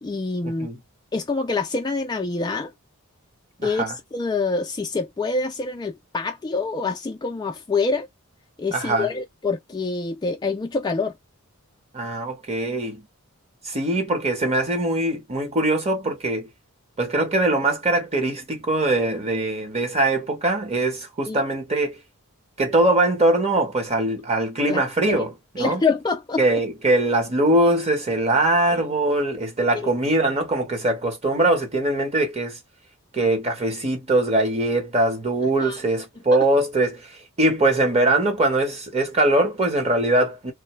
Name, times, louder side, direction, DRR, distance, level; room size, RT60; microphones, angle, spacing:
voice 1, 0.0-0.7 1.1-2.7 3.6-8.1 8.6-11.2 21.3-21.4 24.7-25.3 25.6-26.4 28.7-28.9 29.7-29.9 35.6-35.8 36.3-36.4, left 4 dB, 20° left, 0.3 m, -26 dB
voice 2, 3.6-3.9 8.7-9.1 11.9-13.0 13.6-16.5 17.0-22.0 22.6-25.8 26.4-32.6 33.1-37.0 37.4-40.5, right 2 dB, 30° right, 1.0 m, -22 dB
2.7 x 2.1 x 3.0 m
head